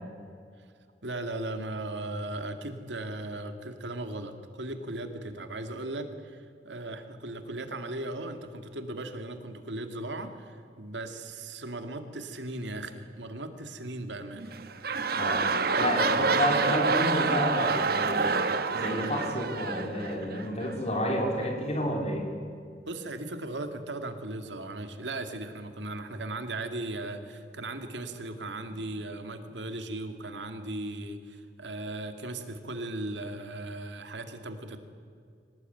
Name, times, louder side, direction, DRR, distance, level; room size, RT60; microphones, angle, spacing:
voice 1, 1.0-14.5 16.1-16.3 22.9-34.8, right 2 dB, 90° right, 7 dB, 2.4 m, -37 dB
sound 1, 14.4-20.7 21.4-21.5, right 4 dB, 60° right, 1.4 m, -27 dB
voice 2, 15.1-22.3, equal, 35° left, 2 dB, 4.3 m, -31 dB
25.0 x 18.5 x 9.3 m, 2.2 s
head